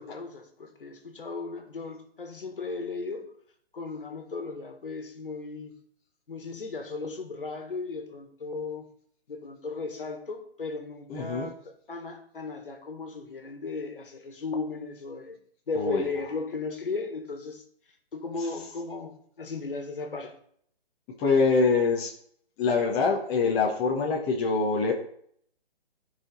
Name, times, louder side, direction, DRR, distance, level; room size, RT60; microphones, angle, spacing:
voice 1, 0.0-3.3 3.7-5.7 6.3-8.9 9.3-15.4 15.7-17.6 18.1-20.4, left 4 dB, 60° left, 1.8 m, -36 dB
voice 2, 11.1-11.5 15.7-16.0 21.2-22.1 22.6-24.9, left 4 dB, 15° left, 0.9 m, -24 dB
13.5 x 5.0 x 3.9 m
figure-of-eight pair, 135°, 31 cm